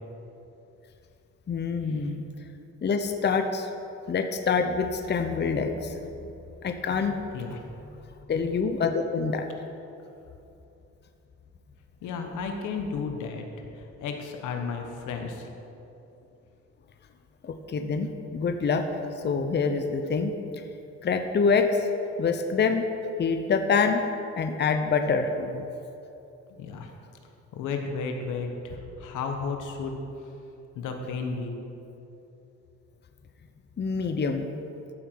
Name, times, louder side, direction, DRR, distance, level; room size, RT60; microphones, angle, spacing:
voice 1, 1.5-2.2 2.8-3.7 4.1-6.0 6.6-7.2 8.3-9.5 17.4-18.8 19.2-20.3 21.0-21.9 22.2-22.9 23.2-24.0 24.4-25.7 33.8-34.5, left 5 dB, 35° left, 6 dB, 0.8 m, -26 dB
voice 2, 12.0-13.4 14.0-15.5 26.6-26.9 27.5-30.0 30.7-31.6, left 5 dB, 85° left, 3 dB, 1.3 m, -33 dB
14.0 x 7.6 x 4.7 m, 2.9 s
cardioid pair, 90°, 30 cm